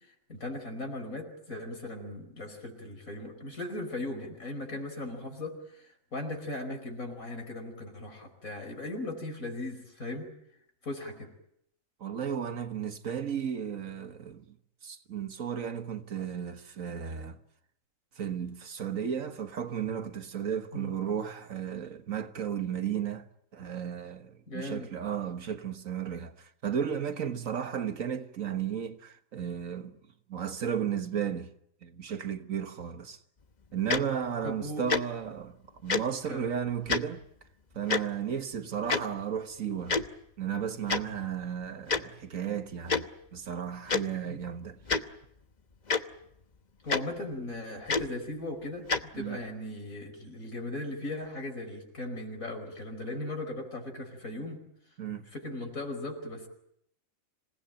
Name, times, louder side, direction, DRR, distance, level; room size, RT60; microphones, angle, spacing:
voice 1, 0.3-10.3 10.8-11.3 20.7-20.9 24.5-24.9 34.4-34.9 36.3-36.5 44.3-44.4 46.8-48.9 49.1-54.6 55.3-56.5, left 2 dB, 90° left, 5.4 m, -38 dB
voice 2, 12.0-14.6 14.8-17.4 18.2-23.3 23.5-30.0 30.3-31.5 31.8-33.2 33.7-35.6 35.8-37.2 37.7-40.0 40.4-44.8 49.1-49.4 55.0-55.3, right 8 dB, 80° right, 1.8 m, -34 dB
Tick-tock, 33.9-34.0 34.9-35.0 35.9-36.0 36.9-37.0 37.9-38.0 38.9-39.0 39.9-40.1 40.9-41.0 41.9-42.0 42.9-43.0 43.9-44.0 44.9-45.0 45.9-46.0 46.9-47.0 47.9-48.1 48.9-49.0, left 4 dB, 35° left, 1.1 m, -26 dB
26.5 x 19.0 x 9.0 m
omnidirectional pair, 1.4 m